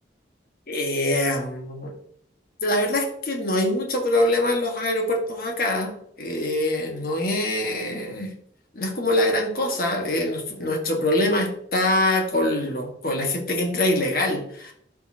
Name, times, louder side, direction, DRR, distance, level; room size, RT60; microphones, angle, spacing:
voice 1, 0.7-1.9 2.6-5.9 6.2-8.3 8.7-14.7, left 1 dB, 50° left, 2 dB, 1.6 m, -24 dB
12.0 x 5.5 x 2.8 m, 0.68 s
head